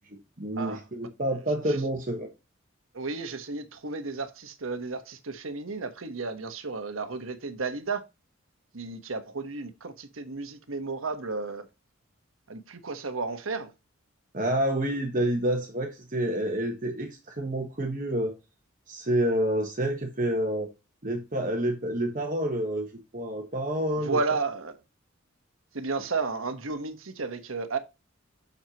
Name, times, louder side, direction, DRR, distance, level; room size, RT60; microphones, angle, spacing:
voice 1, 0.4-2.3 14.3-18.3 18.9-20.7 21.0-24.2, right 1 dB, 40° right, 1.3 m, -28 dB
voice 2, 2.9-8.0 8.7-11.7 12.5-13.7 24.0-24.8 25.7-27.8, right 4 dB, 85° right, 1.2 m, -33 dB
7.5 x 6.6 x 2.9 m
head